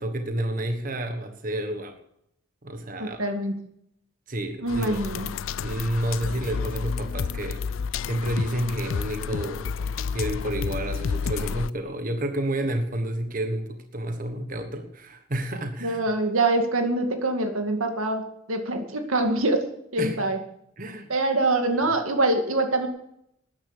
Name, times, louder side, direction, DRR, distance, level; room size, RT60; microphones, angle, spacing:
voice 1, 0.0-2.0 2.6-3.3 4.3-5.0 5.6-7.6 8.1-16.0 20.0-20.2 20.8-21.1, right 1 dB, 40° right, 6 dB, 1.4 m, -30 dB
voice 2, 3.0-3.5 4.6-5.3 15.8-19.7 19.9-20.4 21.1-22.9, right 2 dB, 90° right, 5 dB, 2.4 m, -24 dB
sound 1, 4.7-11.7, left 5 dB, 75° left, 0.4 m, -30 dB
13.5 x 10.0 x 6.8 m, 0.75 s
head